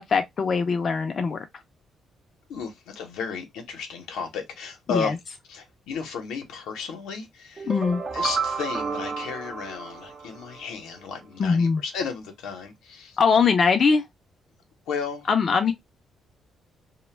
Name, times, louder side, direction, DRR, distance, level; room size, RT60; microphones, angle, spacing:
voice 1, 0.1-1.4 4.9-5.1 7.7-8.0 11.4-11.8 13.2-14.0 15.3-15.7, left 5 dB, 45° left, 0.4 m, -21 dB
voice 2, 2.5-5.2 5.5-7.7 8.1-13.2 14.9-15.7, left 5 dB, 90° left, 0.7 m, -34 dB
sound 1, 7.6-10.6, right 5 dB, 35° right, 0.3 m, -31 dB
2.1 x 2.1 x 3.1 m
cardioid pair, 90°, 0 cm